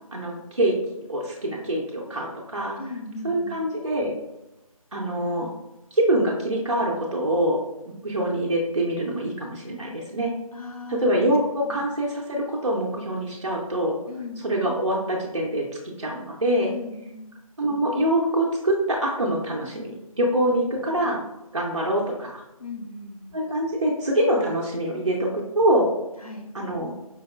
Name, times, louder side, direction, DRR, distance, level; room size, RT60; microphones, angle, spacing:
voice 1, 0.1-0.8 1.1-2.8 3.2-4.2 4.9-5.5 5.9-7.6 7.9-10.3 10.9-14.0 14.4-15.6 16.0-16.7 17.6-21.2 21.5-22.4 23.3-25.3 25.6-25.9 26.5-26.9, right 1 dB, 55° right, -2 dB, 0.6 m, -24 dB
voice 2, 2.8-3.6 10.5-11.0 11.6-11.8 14.1-14.4 16.7-17.3 20.4-20.8 22.6-23.4 26.2-26.5, left 3 dB, 75° left, 1 dB, 0.8 m, -38 dB
4.5 x 2.1 x 2.3 m, 0.93 s
figure-of-eight pair, 160°, 19 cm